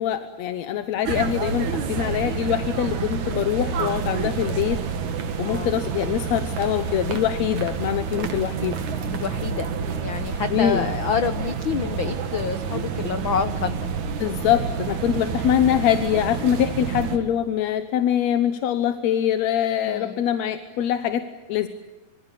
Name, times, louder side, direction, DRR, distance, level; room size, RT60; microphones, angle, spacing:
voice 1, 0.0-4.8 5.4-8.8 10.5-10.9 14.2-21.7, left 10 dB, 65° left, 9 dB, 2.1 m, -24 dB
sound 1, 1.0-17.2, right 5 dB, 65° right, 3.2 m, -28 dB
voice 2, 9.0-9.7 10.0-13.8 15.1-15.2 19.8-20.2, left 6 dB, 85° left, 10 dB, 1.0 m, -28 dB
26.0 x 25.0 x 8.5 m, 1.1 s
omnidirectional pair, 3.7 m